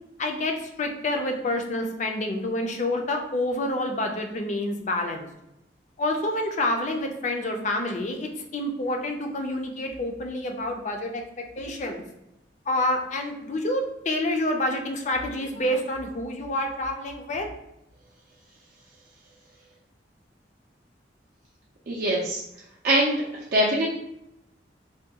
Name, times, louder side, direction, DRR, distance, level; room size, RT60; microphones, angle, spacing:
voice 1, 0.2-5.3 6.0-12.0 12.7-17.5, left 1 dB, 40° left, 3 dB, 0.4 m, -28 dB
voice 2, 21.9-22.4 22.8-23.2 23.5-23.9, right 1 dB, 55° right, -4 dB, 0.4 m, -22 dB
3.4 x 2.2 x 2.8 m, 0.84 s
head